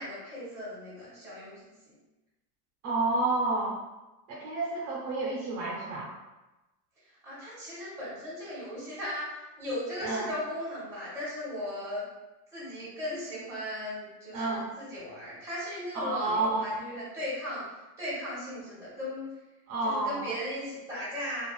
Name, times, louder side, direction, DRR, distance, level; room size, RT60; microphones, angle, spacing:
voice 1, 0.0-2.0 7.2-12.0 12.5-17.6 18.0-19.3 19.8-21.5, left 1 dB, 5° right, -10 dB, 0.9 m, -37 dB
voice 2, 2.8-3.8 4.3-6.1 10.0-10.3 14.3-14.7 15.9-16.7 19.7-20.3, right 2 dB, 35° right, -5 dB, 0.7 m, -30 dB
2.4 x 2.3 x 2.3 m, 1.0 s
cardioid pair, 170°, 49 cm